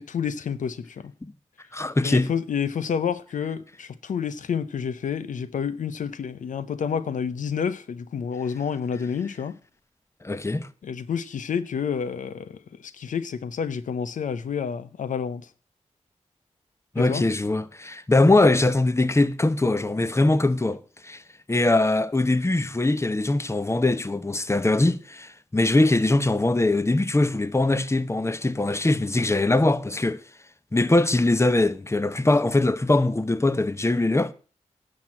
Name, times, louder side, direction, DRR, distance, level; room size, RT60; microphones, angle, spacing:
voice 1, 0.0-1.1 2.0-9.6 10.8-15.5 17.0-17.2, left 7 dB, 90° left, 0.6 m, -29 dB
voice 2, 1.7-2.3 10.2-10.7 16.9-21.2 21.5-30.2 30.7-34.3, left 2 dB, 20° left, 0.9 m, -22 dB
10.5 x 6.2 x 7.4 m
cardioid pair, 50°, 13 cm